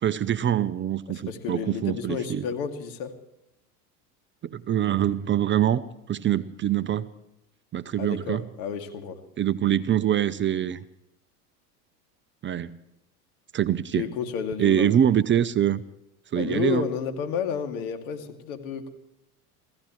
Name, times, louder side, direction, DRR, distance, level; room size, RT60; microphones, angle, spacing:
voice 1, 0.0-2.5 4.4-5.8 6.1-7.1 7.7-8.5 9.4-10.8 12.4-12.8 13.5-14.1 14.6-15.8 16.3-16.9, right 10 dB, 25° right, 13 dB, 0.7 m, -24 dB
voice 2, 1.1-3.1 8.0-9.2 14.0-14.9 16.3-18.9, left 7 dB, 65° left, 5 dB, 2.6 m, -31 dB
28.0 x 15.5 x 3.2 m, 0.82 s
hypercardioid pair, 95°, 46 cm